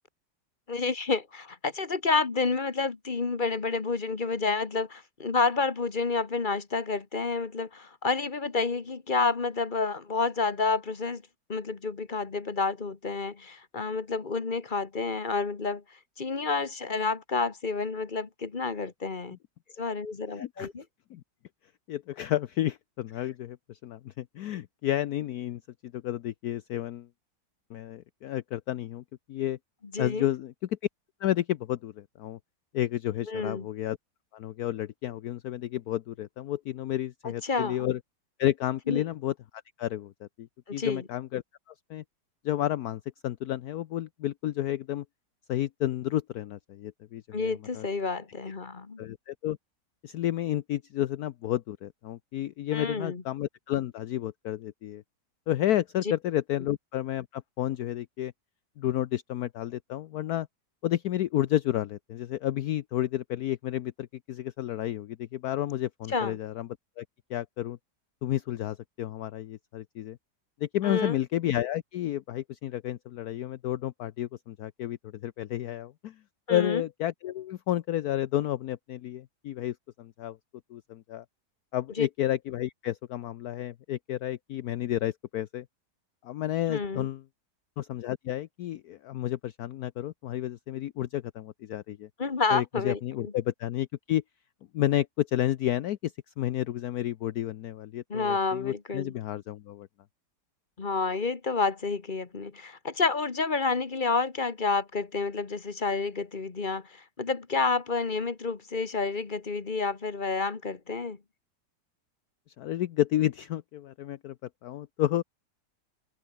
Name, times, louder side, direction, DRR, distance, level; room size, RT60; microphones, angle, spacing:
voice 1, 0.7-11.2 11.5-15.8 16.2-19.4 19.8-20.8 29.9-30.2 33.3-33.7 37.2-37.9 38.9-39.0 40.7-41.0 47.3-49.0 52.7-53.2 66.1-66.4 70.8-71.2 76.5-76.8 82.0-82.1 86.7-87.1 92.2-93.3 98.1-99.1 100.8-111.2, left 4 dB, 30° left, 1.4 m, -29 dB
voice 2, 20.3-20.7 21.1-21.2 21.9-27.1 27.7-29.6 30.0-30.5 31.2-32.4 32.7-34.0 34.3-38.0 38.4-39.3 39.8-41.4 41.9-42.0 42.4-45.0 45.5-47.9 48.5-48.6 49.0-49.6 50.0-55.0 55.5-58.3 58.8-60.5 60.8-66.7 67.0-67.1 67.3-67.8 68.2-70.2 70.6-76.1 76.5-80.4 80.7-81.2 81.7-85.6 86.2-87.2 87.8-92.1 92.5-94.2 94.7-99.9 112.6-114.3 114.6-115.2, left 13 dB, 65° left, 1.1 m, -31 dB
omnidirectional pair, 1.8 m